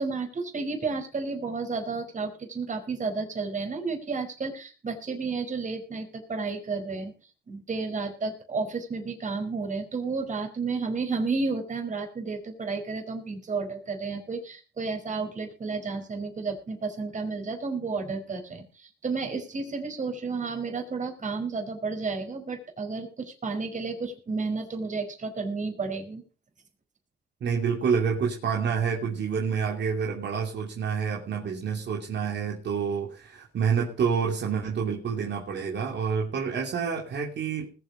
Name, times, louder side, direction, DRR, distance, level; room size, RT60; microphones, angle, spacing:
voice 1, 0.0-7.1 7.5-26.2, right 4 dB, 40° right, 5 dB, 4.9 m, -32 dB
voice 2, 27.4-37.7, right 6 dB, 60° right, 0 dB, 3.0 m, -28 dB
20.5 x 7.8 x 5.1 m, 0.36 s
cardioid pair, 90°, 20 cm